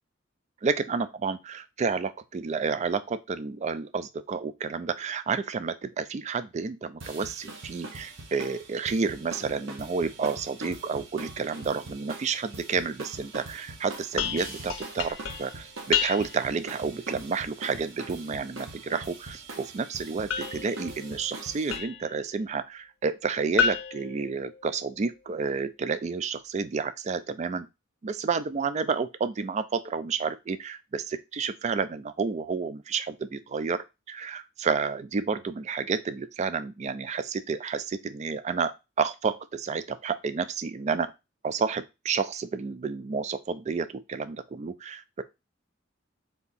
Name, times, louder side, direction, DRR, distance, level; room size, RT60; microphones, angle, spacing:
voice 1, 0.6-27.7 28.0-41.1 41.4-45.2, right 5 dB, 35° right, 0.3 m, -30 dB
sound 1, 7.0-21.8, right 3 dB, 80° right, 1.0 m, -43 dB
sound 2, 14.2-16.6 20.3-22.2 23.6-25.0, left 7 dB, 75° left, 0.6 m, -31 dB
3.5 x 2.8 x 4.1 m
head